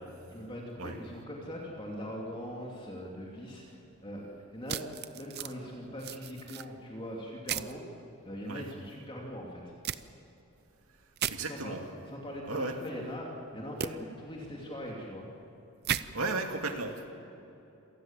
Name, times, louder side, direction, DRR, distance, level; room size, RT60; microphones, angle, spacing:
voice 1, 0.3-4.2 4.5-4.8 5.1-7.8 8.2-9.7 11.5-11.8 12.1-15.3, equal, 25° left, -2 dB, 2.8 m, -41 dB
sound 1, 4.7-5.5 6.0-6.7 7.5-7.7 9.8-10.0 11.2-11.4 13.8-13.9 15.8-16.0, right 9 dB, 45° right, 0.6 m, -34 dB
voice 2, 11.3-11.8 12.5-12.8 16.1-17.1, right 3 dB, 75° right, 4 dB, 2.4 m, -34 dB
27.0 x 18.5 x 7.5 m, 3.0 s
head